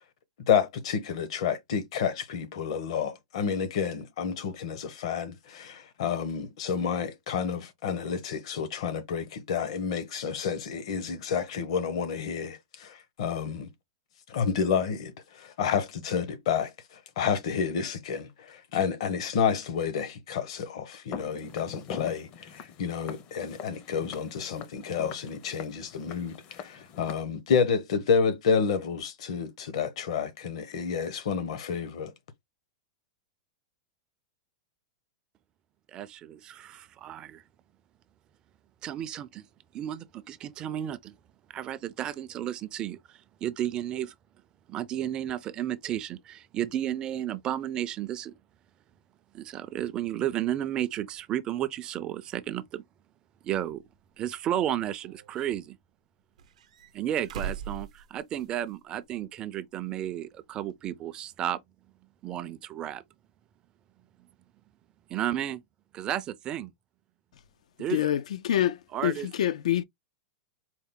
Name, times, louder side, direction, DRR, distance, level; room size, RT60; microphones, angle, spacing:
voice 1, 0.5-13.7 14.3-16.7 17.2-32.1, left 6 dB, 65° left, 0.9 m, -30 dB
Walk footsteps, 21.1-27.1, left 7 dB, 35° left, 0.5 m, -43 dB
voice 2, 35.9-37.4 38.8-39.4 39.7-41.1 41.5-44.1 44.7-48.3 49.3-52.8 53.4-53.8 54.2-55.8 56.9-61.6 62.2-63.0 65.1-65.6 65.9-66.7 67.8-68.0 68.9-69.3, right 11 dB, 25° right, 0.3 m, -33 dB
sound 1, 53.6-53.7 54.6-55.5 56.4-58.7 59.0-59.1 60.7-60.8, right 7 dB, 85° right, 0.6 m, -41 dB
voice 3, 67.9-68.8 69.0-69.8, left 11 dB, 85° left, 0.3 m, -26 dB
4.4 x 2.1 x 3.6 m
supercardioid pair, 160°, 3 cm